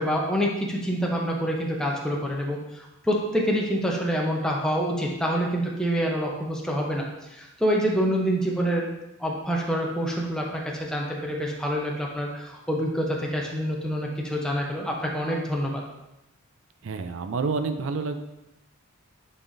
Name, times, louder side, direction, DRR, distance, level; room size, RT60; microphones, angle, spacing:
voice 1, 0.0-7.0 7.3-8.8 9.2-15.8, equal, 5° left, -2 dB, 0.8 m, -26 dB
voice 2, 16.8-18.2, right 4 dB, 60° right, 8 dB, 0.5 m, -28 dB
8.9 x 4.1 x 2.6 m, 0.94 s
head